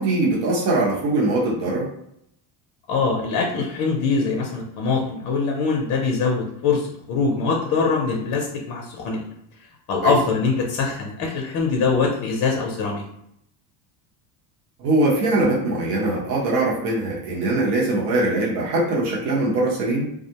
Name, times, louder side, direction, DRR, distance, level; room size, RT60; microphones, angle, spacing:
voice 1, 0.0-1.9 10.0-10.1 14.8-20.1, right 2 dB, 65° right, -4 dB, 1.0 m, -22 dB
voice 2, 2.9-9.2 9.9-13.0, left 4 dB, 45° left, 0 dB, 0.5 m, -23 dB
2.4 x 2.0 x 2.8 m, 0.74 s
cardioid pair, 130°, 45 cm